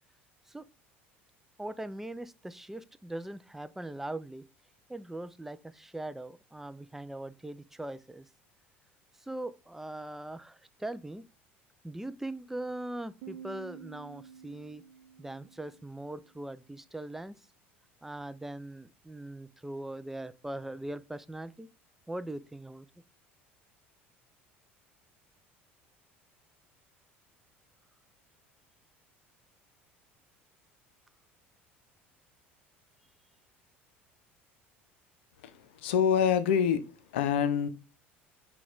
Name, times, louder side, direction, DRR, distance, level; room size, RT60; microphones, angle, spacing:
voice 1, 1.6-4.5 4.9-8.3 9.2-11.2 11.8-14.8 15.2-17.5 18.0-21.7 22.1-22.9, right 1 dB, 5° right, 0.3 m, -40 dB
Piano, 13.2-16.6, right 7 dB, 60° right, 0.6 m, -50 dB
voice 2, 35.4-36.8 37.1-37.7, left 8 dB, 70° left, 0.5 m, -26 dB
5.8 x 2.3 x 3.8 m
figure-of-eight pair, 65°, 6 cm